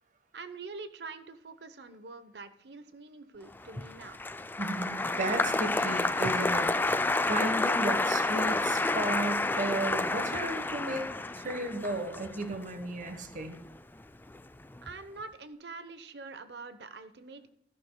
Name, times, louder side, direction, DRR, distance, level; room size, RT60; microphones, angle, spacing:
voice 1, 0.3-4.2 14.8-17.5, right 4 dB, 65° right, 11 dB, 0.9 m, -45 dB
Applause, 3.6-14.0 14.3-14.9, left 2 dB, 10° left, 0.3 m, -30 dB
voice 2, 4.6-7.0 7.3-11.1 11.3-13.6, right 2 dB, 45° right, 7 dB, 1.2 m, -34 dB
13.0 x 11.5 x 2.3 m, 0.79 s
head